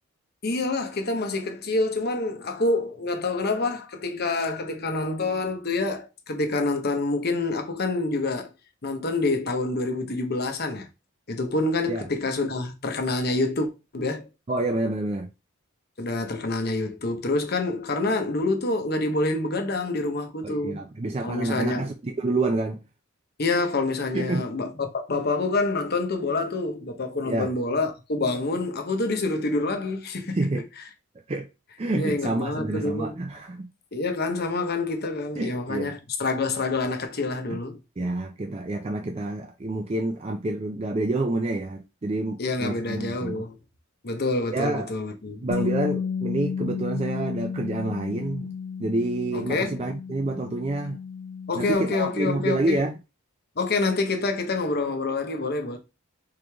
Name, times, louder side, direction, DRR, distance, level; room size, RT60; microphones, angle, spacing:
voice 1, 0.4-8.5 8.8-10.9 11.3-14.3 16.0-20.8 21.2-21.9 23.4-30.4 31.9-33.2 33.9-37.8 42.4-43.6 44.0-45.7 49.3-49.8 51.5-52.8 53.6-55.8, left 3 dB, 50° left, 0.8 m, -27 dB
voice 2, 14.5-15.3 20.4-22.8 24.1-24.4 27.3-27.5 30.4-30.6 31.3-31.5 31.8-33.7 35.4-35.9 37.5-37.6 38.0-43.4 44.5-44.9 45.4-48.5 48.8-51.0 51.5-52.9, right 2 dB, 30° right, 0.4 m, -28 dB
Bass guitar, 45.5-51.7, left 6 dB, 90° left, 0.6 m, -32 dB
3.8 x 3.2 x 3.4 m
head